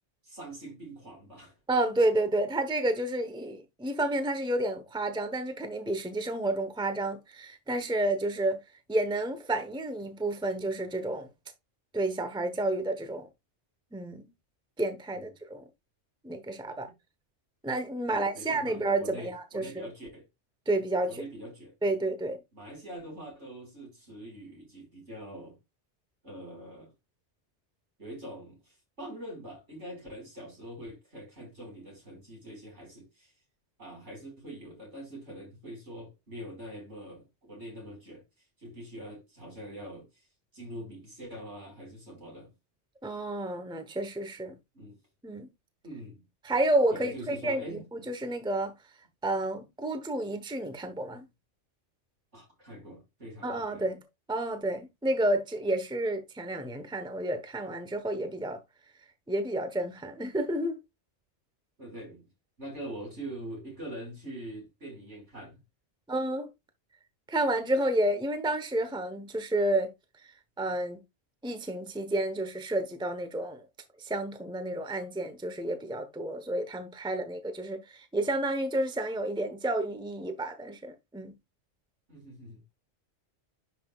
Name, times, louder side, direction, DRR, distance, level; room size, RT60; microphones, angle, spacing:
voice 1, 0.2-1.6 15.1-15.3 18.1-20.3 21.0-21.7 22.5-25.6 26.2-26.9 28.0-33.3 33.8-38.2 38.6-40.2 40.5-42.5 44.7-45.0 45.8-46.3 46.9-48.1 52.3-53.9 61.8-62.3 62.6-65.6 82.1-82.6, right 1 dB, 70° right, 5.5 m, -44 dB
voice 2, 1.7-8.6 8.9-11.3 11.9-13.3 13.9-14.3 14.8-15.6 16.2-16.9 17.6-19.7 20.7-21.2 21.8-22.4 43.0-44.5 45.2-45.5 46.4-48.7 49.2-51.3 53.4-54.0 54.3-58.6 59.3-60.8 66.1-66.5 67.3-69.9 70.6-71.0 71.4-73.6 74.0-81.3, right 1 dB, 5° right, 1.0 m, -30 dB
10.5 x 5.9 x 2.4 m
omnidirectional pair, 1.2 m